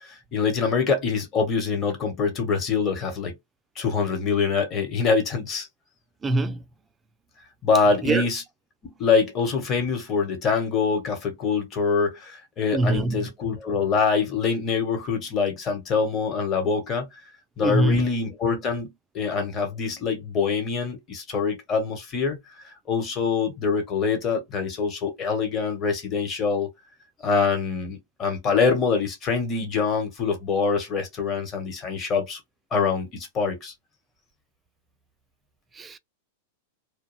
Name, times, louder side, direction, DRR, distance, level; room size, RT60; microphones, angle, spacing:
voice 1, 0.0-3.3 3.8-5.7 7.6-8.4 8.8-17.1 17.6-22.4 22.6-26.7 27.2-32.4 32.7-33.7, left 5 dB, 30° left, 1.1 m, -25 dB
voice 2, 6.2-6.6 8.0-8.3 12.7-13.3 17.6-18.1 35.7-36.0, right 2 dB, 15° right, 0.4 m, -24 dB
2.3 x 2.2 x 3.2 m
hypercardioid pair, 130°, 0 cm